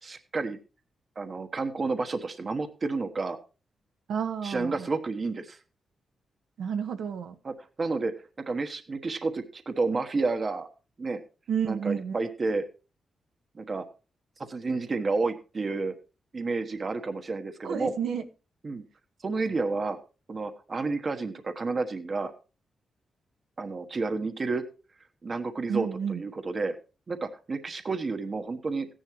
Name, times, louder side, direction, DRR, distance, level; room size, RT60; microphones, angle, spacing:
voice 1, 0.0-0.6 1.2-3.4 4.4-5.6 7.4-8.1 8.4-10.7 11.0-11.2 11.7-12.6 13.5-13.8 14.5-15.9 16.3-17.9 18.6-18.9 19.2-20.0 20.3-22.3 23.6-24.6 25.2-26.8 27.1-28.9, right 3 dB, 30° right, 1.2 m, -30 dB
voice 2, 4.1-4.7 6.6-7.3 11.5-12.2 17.6-18.3 25.7-26.2, right 7 dB, 80° right, 1.4 m, -30 dB
16.0 x 10.5 x 3.1 m
wide cardioid pair, 155°, 0 cm